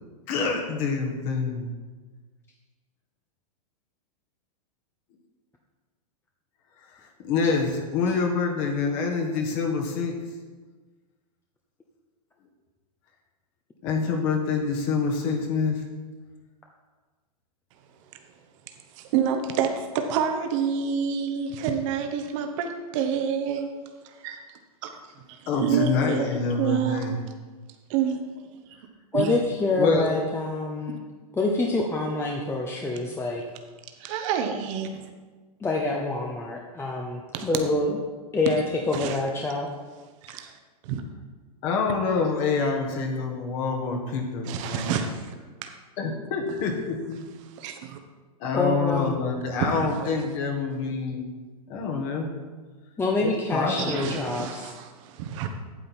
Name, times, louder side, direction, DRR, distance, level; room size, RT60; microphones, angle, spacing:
voice 1, 0.3-1.7 7.3-10.1 13.8-15.8 25.5-27.2 29.8-30.1 41.6-44.9 46.0-47.2 48.4-51.3 51.7-52.3 53.2-54.2, left 4 dB, 45° left, 2 dB, 1.6 m, -26 dB
voice 2, 19.0-23.7 24.0-24.4 24.8-24.9 25.3-26.3 26.6-27.2 27.9-28.2 29.1-29.4 34.0-35.1 37.3-37.5 38.9-39.2 40.2-40.5 40.8-41.0 44.5-45.3 45.6-45.7 47.6-48.0 49.6-50.1 53.9-55.5, right 7 dB, 50° right, 5 dB, 1.1 m, -28 dB
voice 3, 29.1-31.0 31.3-33.4 35.6-38.0 38.3-39.7 48.5-49.2 53.0-54.7, left 2 dB, 10° left, 0 dB, 0.8 m, -26 dB
9.1 x 7.7 x 4.3 m, 1.4 s
hypercardioid pair, 125°, 20 cm